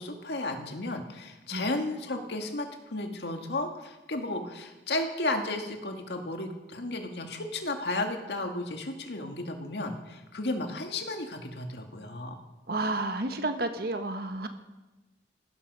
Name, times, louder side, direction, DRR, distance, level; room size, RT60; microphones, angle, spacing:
voice 1, 0.0-12.4, left 2 dB, 70° left, 4 dB, 2.0 m, -33 dB
voice 2, 12.7-14.5, right 2 dB, 60° right, 7 dB, 1.3 m, -31 dB
15.5 x 13.0 x 5.5 m, 1.1 s
head